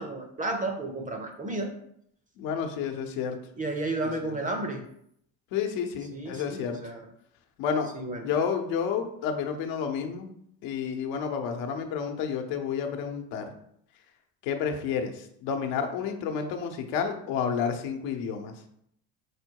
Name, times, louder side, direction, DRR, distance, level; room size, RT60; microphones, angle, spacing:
voice 1, 0.0-1.7 3.5-4.8 6.1-7.1 7.9-8.3, right 2 dB, 20° right, 4 dB, 0.5 m, -32 dB
voice 2, 2.4-3.4 5.5-6.8 7.6-7.9 8.2-10.3 10.6-13.4 14.5-15.1 15.4-18.5, left 7 dB, 80° left, 5 dB, 0.9 m, -30 dB
4.9 x 2.2 x 4.5 m, 0.69 s
cardioid pair, 120°, 44 cm